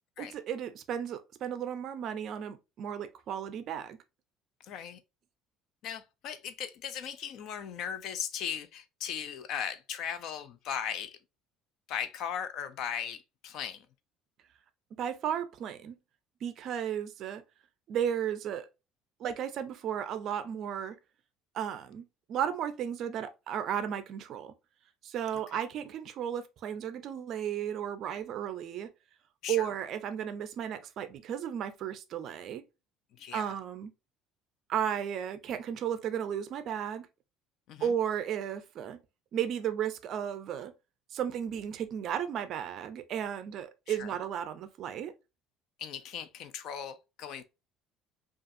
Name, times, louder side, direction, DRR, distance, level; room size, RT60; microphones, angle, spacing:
voice 1, 0.2-4.0 15.0-16.0 16.4-17.4 17.9-18.7 19.2-21.0 21.5-24.5 25.0-28.9 29.5-32.6 33.3-33.9 34.7-37.1 37.8-39.0 39.3-40.7 41.1-45.1, right 9 dB, 40° right, 0.4 m, -34 dB
voice 2, 4.6-5.0 5.8-11.2 11.9-13.9 29.4-29.7 33.2-33.5 37.7-37.9 43.9-44.1 45.8-47.4, left 8 dB, 45° left, 0.4 m, -38 dB
5.2 x 2.4 x 2.5 m
cardioid pair, 180°, 0 cm